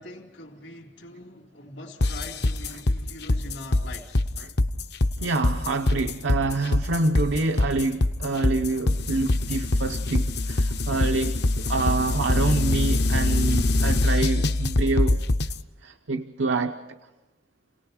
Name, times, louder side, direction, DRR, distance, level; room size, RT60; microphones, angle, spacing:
voice 1, 0.0-4.2, left 1 dB, 75° left, 2.6 m, -42 dB
sound 1, 2.0-15.6, left 2 dB, 60° left, 0.8 m, -23 dB
voice 2, 5.2-15.2 15.8-16.8, right 3 dB, 85° right, 0.8 m, -27 dB
29.5 x 18.5 x 5.0 m
head